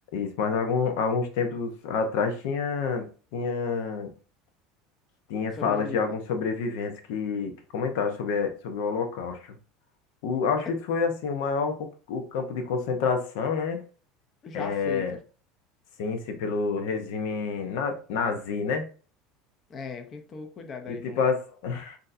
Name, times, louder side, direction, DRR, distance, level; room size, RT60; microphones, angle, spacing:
voice 1, 0.1-4.1 5.3-9.6 10.2-13.8 14.5-15.2 16.0-18.9 20.9-22.0, left 5 dB, 75° left, 0.8 m, -28 dB
voice 2, 5.5-6.0 14.4-15.2 19.7-21.3, left 5 dB, 35° left, 0.7 m, -38 dB
6.3 x 2.7 x 2.6 m
supercardioid pair, 125°, 0 cm